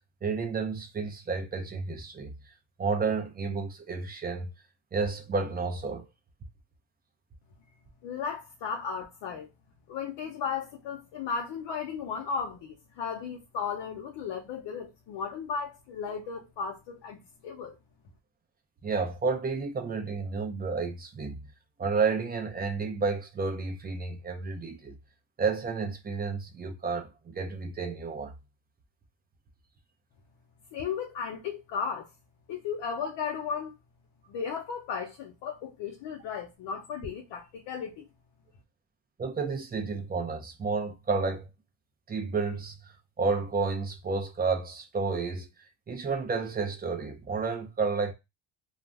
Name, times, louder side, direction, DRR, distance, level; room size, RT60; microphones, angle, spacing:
voice 1, 0.2-2.3 2.8-4.5 4.9-6.1 18.8-21.4 21.8-25.0 25.4-28.3 39.2-41.5 42.1-42.9 43.2-45.5 45.9-48.1, right 4 dB, 20° right, 0.5 m, -31 dB
voice 2, 8.0-9.5 9.9-17.7 30.7-32.1 32.5-33.7 34.3-38.0, left 6 dB, 70° left, 0.8 m, -35 dB
2.5 x 2.0 x 3.3 m
cardioid pair, 130°, 46 cm